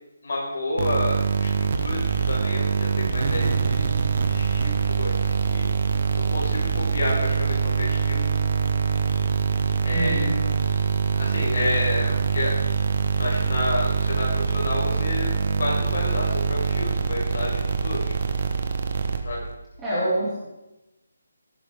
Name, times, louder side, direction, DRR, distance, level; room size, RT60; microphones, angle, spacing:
voice 1, 0.2-4.0 4.2-5.7 6.3-8.3 9.8-10.3 11.1-12.5 13.1-15.3 15.6-18.1 19.2-19.4, left 1 dB, 45° left, -3 dB, 5.0 m, -30 dB
sound 1, 0.8-19.6, right 6 dB, 30° right, 0.9 m, -24 dB
voice 2, 9.9-10.4 19.8-20.4, right 1 dB, 5° right, -10 dB, 2.1 m, -26 dB
17.5 x 10.5 x 3.6 m, 0.96 s
hypercardioid pair, 180°, 0 cm